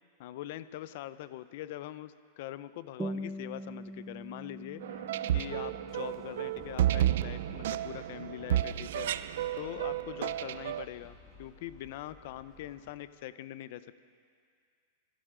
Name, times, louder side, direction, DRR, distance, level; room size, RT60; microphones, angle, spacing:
voice 1, 0.2-14.0, left 13 dB, 55° left, 15 dB, 0.5 m, -43 dB
sound 1, 3.0-8.0, right 1 dB, 10° right, 0.8 m, -43 dB
sound 2, 4.8-10.8, right 12 dB, 70° right, 0.4 m, -32 dB
sound 3, 5.9-12.9, left 2 dB, 15° left, 2.0 m, -57 dB
25.0 x 12.5 x 3.8 m, 2.2 s
supercardioid pair, 160°, 0 cm